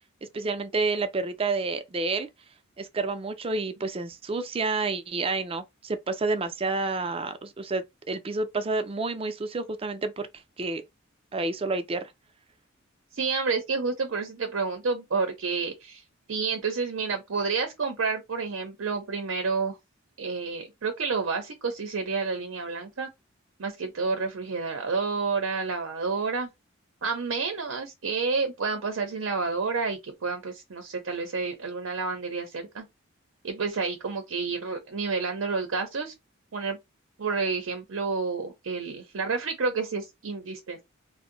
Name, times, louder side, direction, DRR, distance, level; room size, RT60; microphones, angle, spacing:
voice 1, 0.3-2.3 2.8-10.3 10.6-10.8 11.3-12.1, right 3 dB, 30° right, 0.4 m, -29 dB
voice 2, 13.1-16.0 16.3-19.8 20.2-23.1 23.6-26.5 27.0-32.8 33.4-36.1 36.5-36.8 37.2-40.8, right 4 dB, 80° right, 0.6 m, -29 dB
2.6 x 2.1 x 3.8 m
head